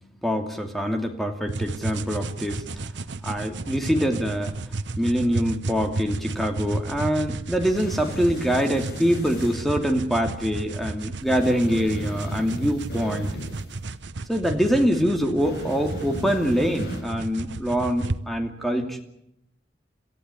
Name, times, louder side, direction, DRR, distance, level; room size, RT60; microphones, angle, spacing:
voice 1, 0.2-2.6 3.2-4.5 5.0-13.3 14.3-19.0, equal, ahead, 4 dB, 2.7 m, -24 dB
sound 1, 1.5-18.2, right 3 dB, 85° right, 1.0 m, -33 dB
sound 2, 7.6-9.6 11.3-13.7 15.4-17.0, left 1 dB, 60° left, 5.5 m, -37 dB
27.0 x 14.5 x 9.9 m, 0.79 s
head